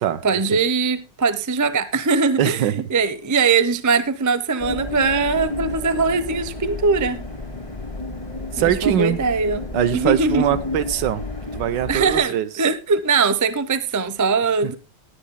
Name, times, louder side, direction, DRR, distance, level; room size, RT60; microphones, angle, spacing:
voice 1, 0.2-7.2 8.6-9.6 9.9-10.4 11.9-14.8, right 4 dB, 25° right, 0.4 m, -21 dB
voice 2, 2.4-2.9 8.5-9.2 9.7-11.2 11.5-12.5 14.6-14.7, right 11 dB, 75° right, 1.5 m, -22 dB
sound 1, 4.6-12.2, left 2 dB, 20° left, 2.1 m, -31 dB
19.5 x 10.0 x 2.2 m
omnidirectional pair, 2.0 m